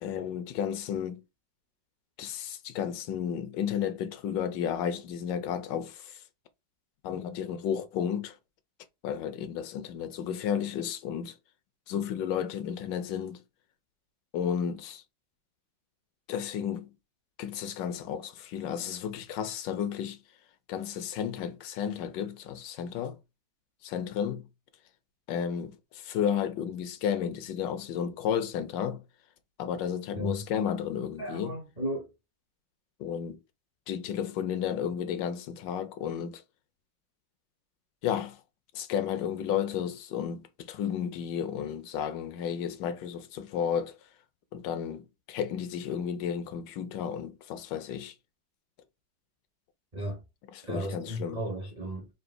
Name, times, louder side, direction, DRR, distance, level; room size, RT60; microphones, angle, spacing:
voice 1, 0.0-1.2 2.2-6.2 7.0-8.4 9.0-11.3 11.9-13.4 14.3-15.0 16.3-16.9 17.4-20.2 20.7-23.2 23.8-24.4 25.3-29.0 29.6-31.5 33.0-33.4 33.9-36.4 38.0-38.4 38.7-44.0 44.5-48.1 50.7-51.4, left 8 dB, 80° left, 1.3 m, -32 dB
voice 2, 31.2-32.1 49.9-50.2 50.6-52.1, right 1 dB, 35° right, 0.6 m, -35 dB
3.9 x 2.5 x 3.7 m
omnidirectional pair, 1.9 m